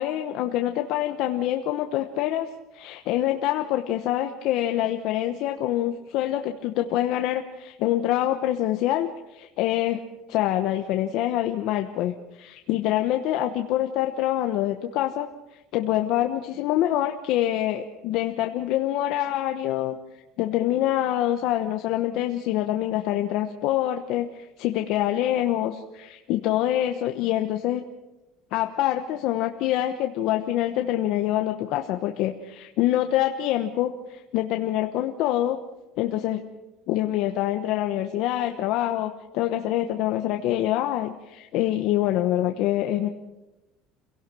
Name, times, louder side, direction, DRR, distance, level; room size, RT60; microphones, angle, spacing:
voice 1, 0.0-2.5 2.7-10.0 10.3-15.3 15.7-20.0 20.4-27.8 28.5-35.6 36.0-36.4 36.9-43.1, left 13 dB, 55° left, 5 dB, 1.0 m, -25 dB
28.0 x 17.5 x 6.2 m, 1.0 s
cardioid pair, 165°, 0 cm